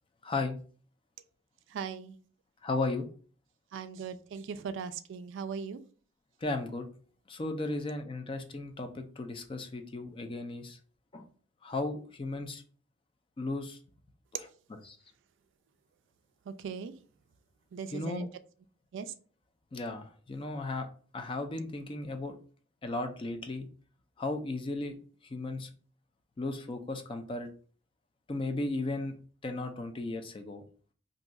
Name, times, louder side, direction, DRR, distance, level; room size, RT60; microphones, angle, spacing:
voice 1, 0.2-0.6 2.6-3.1 6.4-6.9 7.3-10.8 11.1-11.3 11.6-12.6 13.4-13.8 14.4-14.5 14.8-15.0 17.9-18.3 19.7-20.9 21.1-22.3 22.8-23.7 24.2-25.0 25.2-25.7 26.4-27.5 28.3-29.1 29.4-30.6, left 2 dB, 25° left, 6 dB, 0.4 m, -35 dB
voice 2, 1.7-2.2 3.7-5.8 16.5-16.9 17.7-18.3 18.9-19.1, right 6 dB, 65° right, 11 dB, 0.3 m, -39 dB
2.6 x 2.3 x 3.9 m, 0.41 s
head